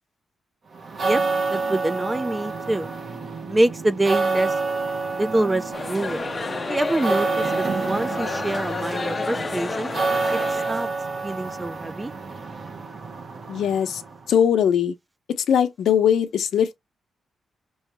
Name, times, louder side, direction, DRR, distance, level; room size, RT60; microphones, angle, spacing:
sound 1, 0.7-14.3, right 4 dB, 45° right, 1.0 m, -28 dB
voice 1, 1.5-2.9 3.5-4.5 5.2-6.3 6.7-9.9 10.3-10.4 10.7-10.9 11.2-12.1, right 1 dB, 15° right, 0.5 m, -25 dB
sound 2, 5.7-10.9, left 3 dB, 30° left, 0.6 m, -30 dB
voice 2, 13.5-14.0 14.3-14.9 15.5-16.8, left 8 dB, 85° left, 0.8 m, -20 dB
5.6 x 3.1 x 3.0 m
wide cardioid pair, 125°, 0 cm